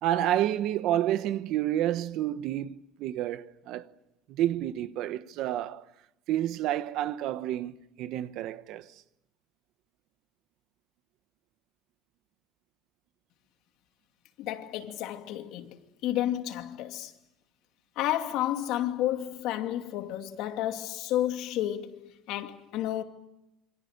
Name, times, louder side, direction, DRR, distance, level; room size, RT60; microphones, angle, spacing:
voice 1, 0.0-3.9 4.3-5.9 6.3-8.9, right 12 dB, 60° right, 1.1 m, -29 dB
voice 2, 14.4-17.1 18.0-23.0, left 12 dB, 65° left, 2.6 m, -31 dB
27.0 x 26.0 x 6.8 m
cardioid pair, 170°, 0 cm